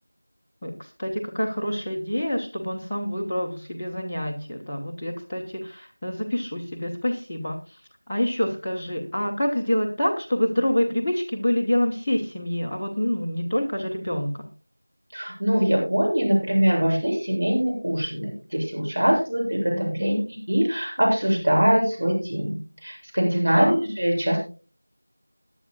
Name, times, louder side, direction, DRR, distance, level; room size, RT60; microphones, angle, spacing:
voice 1, 0.6-7.8 8.1-14.5 19.7-20.2 23.5-23.8, left 1 dB, 5° left, -10 dB, 0.9 m, -27 dB
voice 2, 15.1-24.4, equal, 45° right, -1 dB, 7.5 m, -23 dB
21.0 x 11.0 x 2.3 m, 0.35 s
figure-of-eight pair, 175°, 0 cm